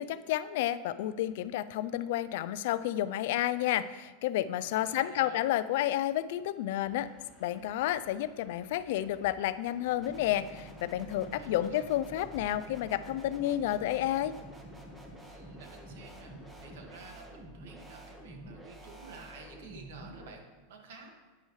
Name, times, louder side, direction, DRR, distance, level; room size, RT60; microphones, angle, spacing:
voice 1, 0.0-7.1 7.4-14.4, left 13 dB, 70° left, 15 dB, 0.4 m, -31 dB
voice 2, 4.5-5.4 11.2-11.9 15.2-21.1, right 4 dB, 75° right, 2 dB, 1.8 m, -51 dB
sound 1, 6.8-17.1, left 2 dB, 20° left, 3.3 m, -58 dB
sound 2, 10.0-20.3, right 1 dB, 10° right, 1.5 m, -48 dB
11.0 x 8.9 x 3.2 m, 1.3 s
supercardioid pair, 125°, 0 cm